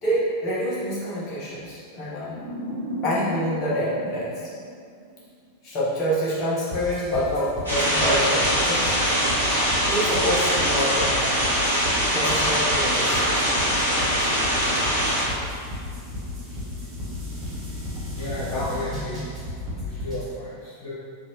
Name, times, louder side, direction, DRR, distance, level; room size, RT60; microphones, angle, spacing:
voice 1, 0.0-2.4 3.0-4.5 5.6-8.9 9.9-11.4 12.1-13.5 17.9-18.0 18.4-18.6, equal, 30° left, -9 dB, 1.3 m, -27 dB
sound 1, 2.1-5.3, equal, 75° left, 1.2 m, -35 dB
sound 2, 6.7-20.3, left 1 dB, 20° right, 1.3 m, -34 dB
sound 3, 7.7-15.2, equal, 85° right, 1.2 m, -22 dB
voice 2, 18.0-19.3 19.8-21.0, left 1 dB, 55° left, -12 dB, 1.3 m, -34 dB
4.6 x 3.6 x 2.9 m, 2.2 s
figure-of-eight pair, 90°, 0 cm